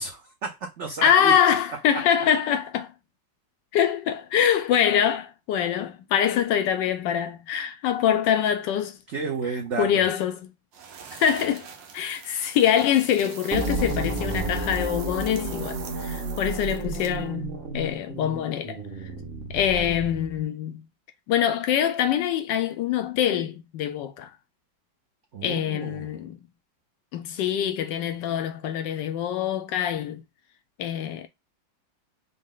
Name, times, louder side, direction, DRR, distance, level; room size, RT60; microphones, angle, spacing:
voice 1, 0.0-1.3 9.1-10.0 25.3-26.2, right 5 dB, 60° right, 0.8 m, -32 dB
voice 2, 1.0-2.9 3.7-9.0 9.8-10.4 11.2-11.7 11.9-18.8 19.5-20.8 21.3-24.3 25.4-26.4 27.1-30.2 30.8-31.3, left 9 dB, 80° left, 1.2 m, -24 dB
sound 1, 10.7-17.3, right 7 dB, 80° right, 1.4 m, -43 dB
sound 2, 13.5-20.4, right 3 dB, 35° right, 1.1 m, -32 dB
5.3 x 2.1 x 3.6 m
omnidirectional pair, 2.0 m